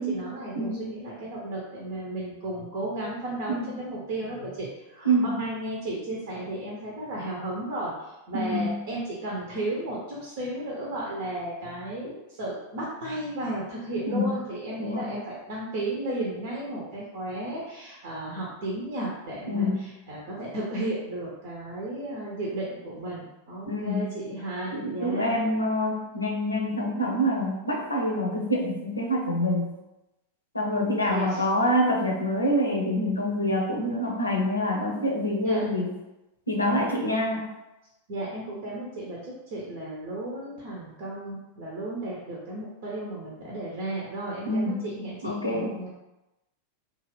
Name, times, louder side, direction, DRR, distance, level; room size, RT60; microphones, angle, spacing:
voice 1, 0.0-25.4 31.1-31.4 35.4-35.7 38.1-45.9, right 1 dB, 50° right, -4 dB, 0.7 m, -34 dB
voice 2, 0.5-0.9 3.5-3.7 5.0-5.4 8.3-8.8 14.1-14.4 14.8-15.1 19.5-19.9 23.6-24.1 24.7-29.7 30.5-35.9 36.5-37.5 44.5-44.9 45.2-45.8, equal, 80° left, -1 dB, 0.6 m, -26 dB
2.8 x 2.4 x 3.1 m, 0.97 s
figure-of-eight pair, 90°, 0 cm